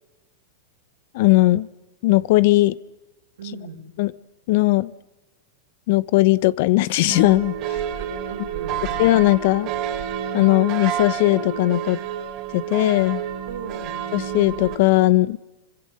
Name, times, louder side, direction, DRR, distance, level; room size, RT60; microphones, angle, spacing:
voice 1, 1.1-1.7 2.0-2.8 4.0-4.1 4.5-4.9 5.9-7.5 9.0-9.7 10.3-12.0 12.5-13.2 14.1-15.4, left 19 dB, 60° left, 18 dB, 0.9 m, -18 dB
voice 2, 3.4-3.8 7.9-9.0 13.5-14.0, right 5 dB, 80° right, 4 dB, 5.6 m, -37 dB
sound 1, 7.1-14.8, right 9 dB, 45° right, 3.0 m, -29 dB
27.5 x 24.5 x 6.6 m, 1.0 s
hypercardioid pair, 115°, 0 cm